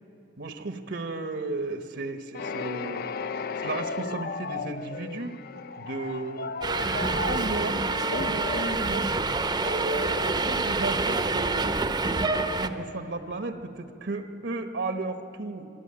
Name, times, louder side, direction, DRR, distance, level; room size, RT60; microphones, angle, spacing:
voice 1, 0.4-3.1 3.6-5.4 5.8-7.8 8.1-9.1 9.6-11.8 12.0-15.6, right 3 dB, 65° right, 8 dB, 1.1 m, -34 dB
sound 1, 2.3-11.1, left 4 dB, 55° left, 0.5 m, -36 dB
Subway metro underground, 6.6-12.7, right 3 dB, 25° right, 0.8 m, -27 dB
25.0 x 12.0 x 8.8 m, 2.9 s
head